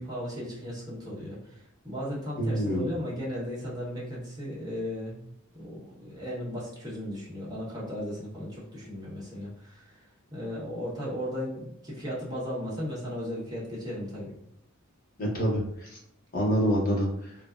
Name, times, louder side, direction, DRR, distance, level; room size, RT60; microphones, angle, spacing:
voice 1, 0.0-5.2 5.5-9.9 10.3-14.3, equal, 20° right, -6 dB, 0.9 m, -36 dB
voice 2, 2.4-2.9 15.2-16.0 16.3-17.3, equal, 40° left, -3 dB, 0.9 m, -27 dB
3.3 x 2.0 x 2.4 m, 0.75 s
head